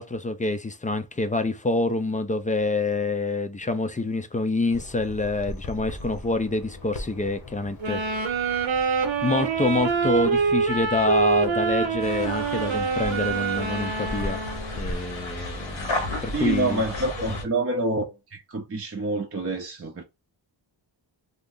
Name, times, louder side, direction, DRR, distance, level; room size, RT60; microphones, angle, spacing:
voice 1, 0.0-8.0 9.2-14.4 14.7-16.8, left 2 dB, 20° left, 0.4 m, -26 dB
Bird vocalization bird call bird song, 4.7-14.9, left 1 dB, 45° left, 0.8 m, -40 dB
sound 1, 7.8-14.9, right 5 dB, 85° right, 0.8 m, -25 dB
sound 2, 12.0-17.4, left 2 dB, 70° left, 1.0 m, -34 dB
voice 2, 16.3-18.0 18.3-20.0, right 2 dB, 30° right, 0.5 m, -27 dB
2.7 x 2.4 x 3.5 m
wide cardioid pair, 100°, 45 cm